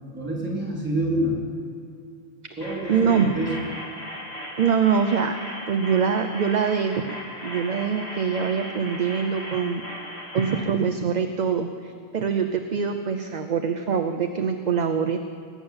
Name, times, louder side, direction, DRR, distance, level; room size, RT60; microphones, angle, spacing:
voice 1, 0.1-1.4 2.6-3.5, right 1 dB, 10° right, -4 dB, 4.0 m, -27 dB
sound 1, 2.6-10.6, equal, 85° left, 3.5 m, -37 dB
voice 2, 2.9-3.3 4.6-5.4 5.7-7.2 7.4-9.8 10.3-15.2, right 6 dB, 50° right, 7 dB, 0.8 m, -24 dB
19.5 x 7.2 x 8.8 m, 2.5 s
omnidirectional pair, 1.1 m